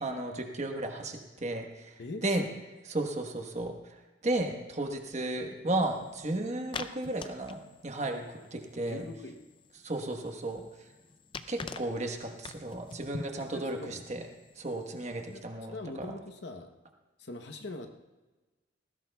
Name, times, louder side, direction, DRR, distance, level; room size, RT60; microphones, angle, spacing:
voice 1, 0.0-2.4 2.9-4.0 4.2-9.1 9.8-10.6 11.5-14.2 14.6-16.1, right 2 dB, 35° right, 4 dB, 1.2 m, -34 dB
voice 2, 2.0-2.4 8.9-9.4 13.4-14.1 15.3-15.4 15.7-16.7 17.2-17.9, left 2 dB, 60° left, 5 dB, 0.9 m, -42 dB
sound 1, 5.8-15.4, left 4 dB, 25° left, 0.4 m, -47 dB
19.0 x 15.5 x 2.3 m, 1.2 s
head